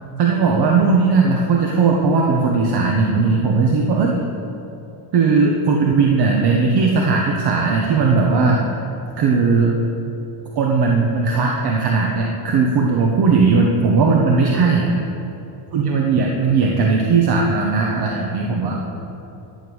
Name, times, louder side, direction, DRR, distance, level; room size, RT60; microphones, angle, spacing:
voice 1, 0.2-4.2 5.1-8.9 9.2-9.7 10.5-14.9 15.7-18.8, right 4 dB, 50° right, -1 dB, 1.3 m, -17 dB
12.0 x 7.1 x 6.4 m, 2.9 s
cardioid pair, 130°, 48 cm